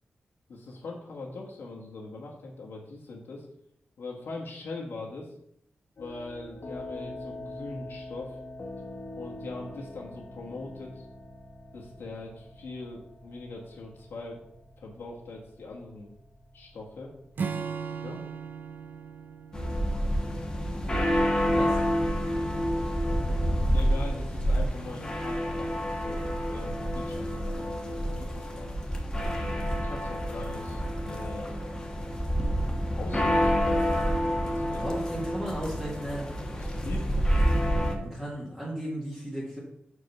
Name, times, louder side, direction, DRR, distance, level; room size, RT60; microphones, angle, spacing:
voice 1, 0.5-3.5 4.0-5.3 6.0-8.4 9.1-11.1 11.7-14.4 14.8-16.1 16.5-17.1 18.0-18.2 23.7-28.8 29.7-31.7 33.0-33.7 34.2-35.2 36.6-37.1, left 3 dB, 75° left, -2 dB, 1.3 m, -41 dB
sound 1, 6.0-23.9, left 2 dB, 50° left, 1.3 m, -46 dB
Acoustic guitar / Strum, 17.4-20.9, right 6 dB, 55° right, 0.4 m, -37 dB
sound 2, 19.5-38.0, equal, 20° left, 1.1 m, -28 dB
voice 2, 21.5-21.8 34.8-36.3 38.0-39.6, right 1 dB, 5° right, -6 dB, 1.6 m, -35 dB
5.9 x 5.0 x 5.4 m, 0.74 s
wide cardioid pair, 145°, 4 cm